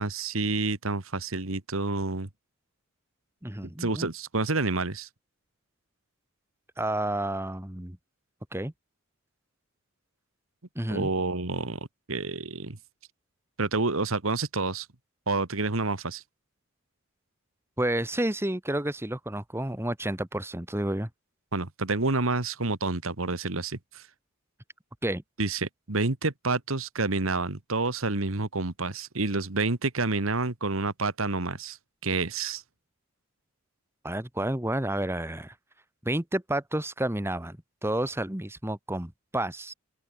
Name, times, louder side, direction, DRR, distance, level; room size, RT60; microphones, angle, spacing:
voice 1, 0.0-2.3 3.8-5.1 10.9-12.8 13.6-14.9 15.3-16.2 21.5-24.0 25.4-31.8 32.0-32.6, right 3 dB, 80° right, 1.8 m, -29 dB
voice 2, 3.4-4.1 6.8-8.0 8.5-8.7 10.7-11.1 17.8-21.1 25.0-25.2 34.0-35.5 36.0-39.7, right 1 dB, 10° right, 1.4 m, -30 dB
open air
head